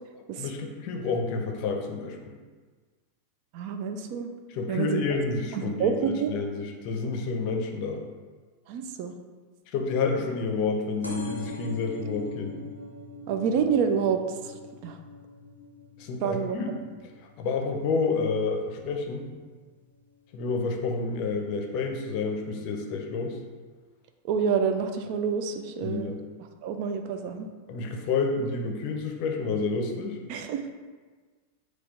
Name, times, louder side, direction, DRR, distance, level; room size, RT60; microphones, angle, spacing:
voice 1, 0.4-2.3 4.5-8.0 9.7-12.6 16.0-16.7 17.4-19.3 20.3-23.4 25.8-26.2 27.7-30.2, left 4 dB, 45° left, 3 dB, 0.6 m, -29 dB
voice 2, 3.5-4.3 4.7-5.0 5.5-6.3 8.7-9.1 13.3-14.5 14.8-15.0 16.2-16.6 24.2-26.1 26.6-27.5 30.3-30.8, right 6 dB, 45° right, 7 dB, 0.3 m, -28 dB
sound 1, 11.0-18.3 18.8-19.2 20.1-20.2 20.4-20.5 20.7-20.8, left 1 dB, 90° left, 0.5 m, -42 dB
4.2 x 2.3 x 4.2 m, 1.4 s
figure-of-eight pair, 90°, 0 cm